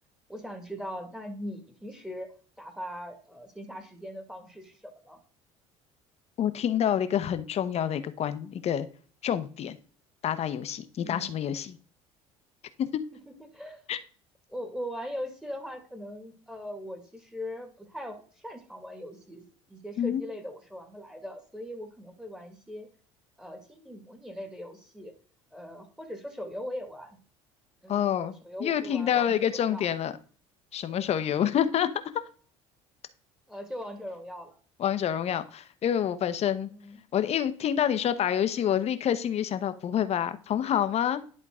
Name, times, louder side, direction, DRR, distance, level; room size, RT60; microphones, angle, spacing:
voice 1, 0.3-2.3 2.6-5.2 11.0-11.4 13.3-13.8 14.5-22.9 23.4-25.1 25.5-27.2 27.8-29.9 33.5-34.6 36.7-37.0, equal, 5° right, 4 dB, 2.0 m, -40 dB
voice 2, 6.4-8.9 9.2-9.8 10.2-11.8 12.8-13.0 13.9-14.0 20.0-20.2 27.9-28.3 28.6-30.1 30.7-31.9 34.8-36.7 37.1-41.2, left 9 dB, 50° left, 11 dB, 1.0 m, -27 dB
11.0 x 3.8 x 3.7 m, 0.42 s
supercardioid pair, 85°, 14 cm